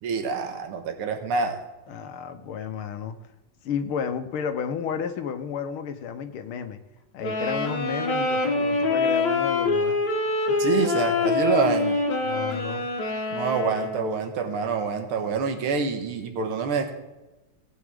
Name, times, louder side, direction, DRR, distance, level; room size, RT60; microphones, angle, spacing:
voice 1, 0.0-1.6 10.6-12.0 13.3-16.9, right 5 dB, 85° right, 5 dB, 2.1 m, -26 dB
voice 2, 1.9-3.2 3.6-6.8 7.1-10.0 12.2-12.9, left 7 dB, 80° left, 8 dB, 1.7 m, -32 dB
sound 1, 7.2-14.3, left 3 dB, 55° left, 1.8 m, -25 dB
17.5 x 8.2 x 3.6 m, 1.1 s
omnidirectional pair, 2.3 m